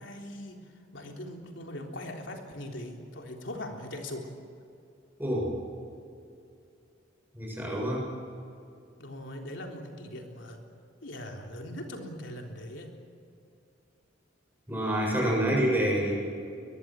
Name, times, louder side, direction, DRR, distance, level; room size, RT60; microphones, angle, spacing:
voice 1, 0.0-4.3 9.0-10.6 11.0-12.9, left 1 dB, 70° left, 2 dB, 3.7 m, -40 dB
voice 2, 5.2-5.5 7.3-8.1 14.7-16.1, equal, 10° right, -3 dB, 7.0 m, -27 dB
22.5 x 22.0 x 7.7 m, 2.5 s
head